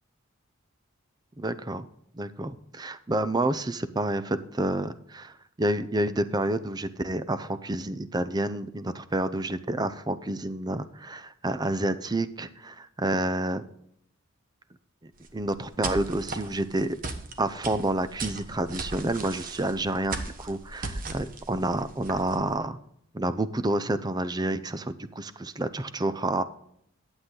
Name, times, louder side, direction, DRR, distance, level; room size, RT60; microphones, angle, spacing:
voice 1, 1.4-1.9 2.1-5.3 5.6-13.6 15.3-17.0 17.4-22.8 23.1-26.4, right 1 dB, 20° right, 12 dB, 0.5 m, -29 dB
sound 1, 15.2-22.5, right 3 dB, 45° right, 1.1 m, -37 dB
11.5 x 8.0 x 3.8 m, 0.72 s
head